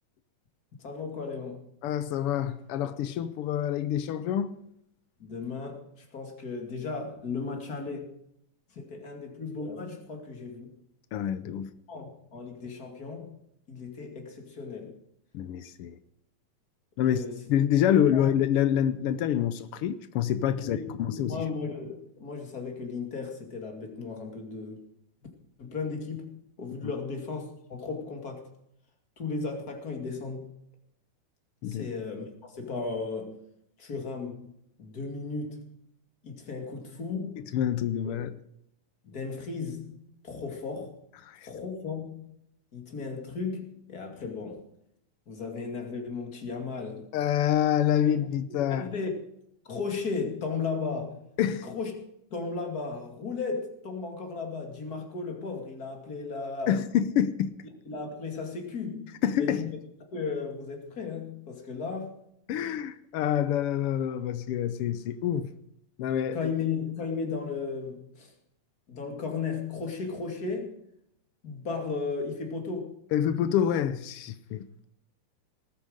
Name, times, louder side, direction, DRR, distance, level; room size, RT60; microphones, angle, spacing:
voice 1, 0.8-1.7 5.2-8.1 8.7-10.7 11.9-13.3 13.7-15.0 17.0-17.4 18.1-18.3 20.5-24.8 25.6-28.5 29.2-30.5 31.7-33.4 33.8-34.5 34.8-35.8 36.2-37.5 38.0-38.1 39.0-40.9 41.4-42.3 42.7-44.6 45.3-47.1 48.5-49.1 49.6-51.3 51.6-51.9 52.3-56.8 57.9-59.8 60.1-62.2 66.3-68.3 68.9-70.8 71.4-73.0, left 4 dB, 30° left, 2.7 m, -35 dB
voice 2, 1.8-4.5 11.1-11.7 15.3-16.0 17.0-17.2 17.5-21.4 26.8-26.9 31.6-31.9 37.5-38.3 41.2-41.5 47.1-48.9 51.4-51.7 56.7-57.5 59.2-59.6 62.5-65.5 66.0-66.4 73.1-74.6, left 10 dB, 85° left, 1.2 m, -27 dB
19.0 x 9.2 x 6.5 m
omnidirectional pair, 3.5 m